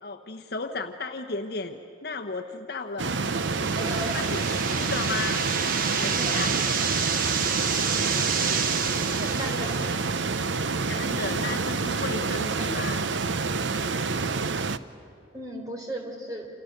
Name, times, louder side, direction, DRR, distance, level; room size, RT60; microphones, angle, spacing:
voice 1, 0.0-3.2 4.1-5.4 5.9-6.8 10.9-13.0, left 4 dB, 55° left, 4 dB, 1.0 m, -34 dB
voice 2, 3.0-4.3 6.2-6.4 9.0-9.9 12.6-12.7 15.3-16.5, equal, 20° right, 2 dB, 3.9 m, -37 dB
sound 1, 3.0-14.8, right 4 dB, 75° right, 0.8 m, -28 dB
sound 2, 3.2-10.2, right 6 dB, 45° right, 1.3 m, -29 dB
30.0 x 27.5 x 6.7 m, 2.7 s
head